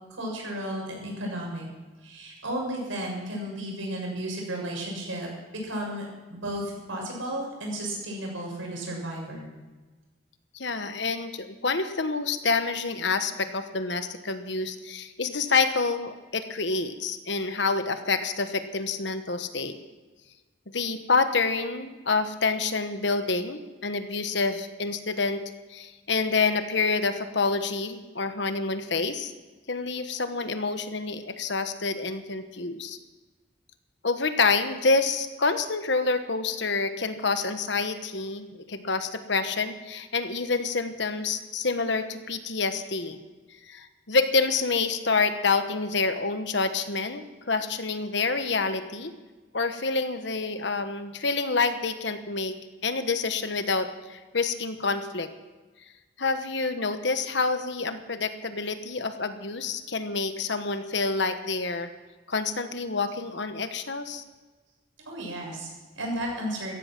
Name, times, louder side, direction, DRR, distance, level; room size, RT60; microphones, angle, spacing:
voice 1, 0.1-1.7 2.0-5.3 5.6-9.5 65.1-66.8, right 1 dB, 80° right, -1 dB, 7.0 m, -33 dB
voice 2, 10.5-19.8 20.7-25.4 25.7-29.3 29.7-33.0 34.0-43.2 43.7-49.1 49.5-52.5 52.8-55.3 56.2-61.9 62.3-64.2, left 4 dB, 60° left, 9 dB, 1.2 m, -27 dB
16.5 x 14.5 x 6.0 m, 1.3 s
head